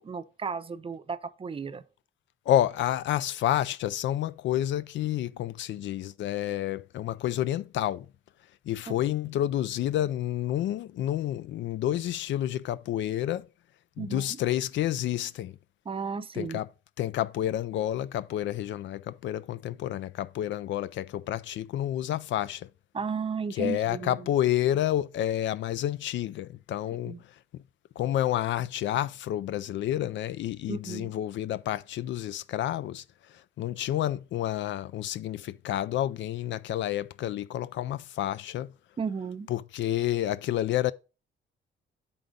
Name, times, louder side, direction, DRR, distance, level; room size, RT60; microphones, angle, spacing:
voice 1, 0.0-1.8 8.9-9.0 14.0-14.4 15.9-16.6 22.9-24.3 27.1-27.2 30.7-31.1 39.0-39.5, right 5 dB, 30° right, 0.6 m, -34 dB
voice 2, 2.5-8.1 8.7-13.5 14.0-15.6 16.3-16.7 17.0-22.7 23.5-27.2 28.0-33.0 33.3-38.7 39.5-40.9, left 12 dB, 70° left, 0.4 m, -29 dB
7.0 x 5.1 x 3.8 m
cardioid pair, 90°, 20 cm